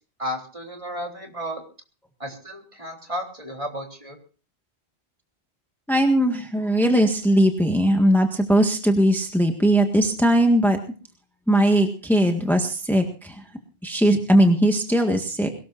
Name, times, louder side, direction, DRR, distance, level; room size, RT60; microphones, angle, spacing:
voice 1, 0.2-1.6 2.2-4.2, equal, 30° right, 2 dB, 3.8 m, -33 dB
voice 2, 5.9-10.8 11.5-13.4 13.8-15.5, right 1 dB, ahead, 3 dB, 1.7 m, -19 dB
22.5 x 19.0 x 2.6 m, 0.36 s
omnidirectional pair, 1.1 m